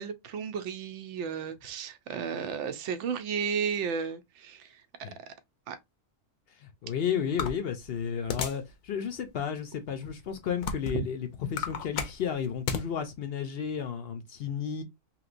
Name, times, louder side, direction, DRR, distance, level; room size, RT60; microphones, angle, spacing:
voice 1, 0.0-4.8 5.3-5.4 5.7-5.8 10.9-11.0, right 6 dB, 70° right, 0.9 m, -33 dB
voice 2, 6.6-14.8, left 7 dB, 60° left, 0.7 m, -33 dB
sound 1, 7.4-8.7 9.3-9.4 10.1-11.1 11.4-12.9, left 6 dB, 85° left, 1.1 m, -33 dB
3.2 x 2.8 x 2.5 m
omnidirectional pair, 1.4 m